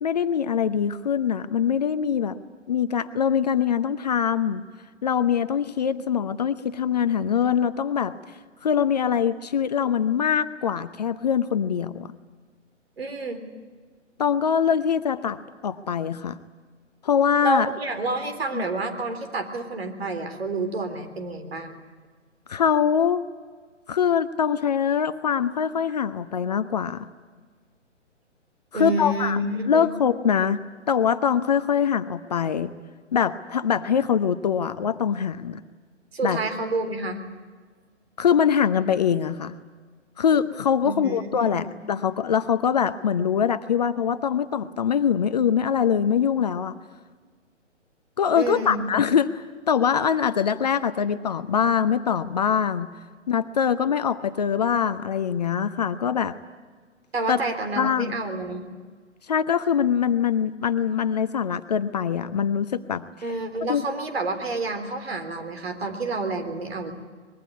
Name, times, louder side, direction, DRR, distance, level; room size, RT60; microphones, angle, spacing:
voice 1, 0.0-2.4 2.7-4.6 5.0-8.1 8.6-12.1 14.2-16.4 17.0-17.7 18.5-18.6 22.5-23.2 23.9-27.1 28.7-29.4 29.7-30.6 30.9-32.7 33.1-35.6 36.2-36.4 38.2-39.6 40.2-46.7 48.2-52.9 53.3-56.3 57.3-57.4 57.8-58.1 59.3-63.0 63.7-63.8, left 7 dB, 35° left, 12 dB, 0.8 m, -23 dB
voice 2, 13.0-13.5 17.4-21.7 28.7-29.9 36.1-37.2 40.8-41.6 48.3-48.8 57.1-58.7 63.2-66.9, right 2 dB, 55° right, 7 dB, 3.8 m, -29 dB
24.5 x 21.5 x 9.6 m, 1.5 s
figure-of-eight pair, 130°, 37 cm